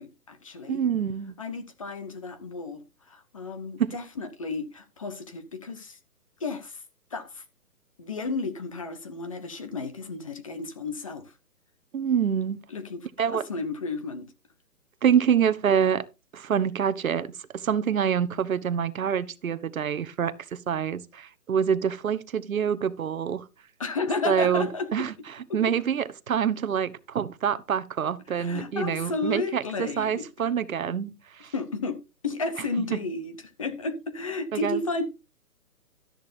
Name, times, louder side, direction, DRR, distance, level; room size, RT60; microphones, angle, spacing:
voice 1, 0.0-0.8 1.4-6.0 6.4-6.8 7.1-7.4 8.0-11.3 12.7-14.3 23.8-25.1 25.5-25.8 28.3-30.3 31.5-35.1, left 3 dB, 20° left, 0.8 m, -33 dB
voice 2, 0.7-1.3 3.8-3.9 11.9-12.6 13.2-13.4 15.0-16.0 16.3-23.4 24.2-25.1 25.5-31.5 32.9-33.0 34.5-34.8, right 8 dB, 60° right, 1.1 m, -26 dB
13.0 x 10.5 x 2.7 m
hypercardioid pair, 170°, 46 cm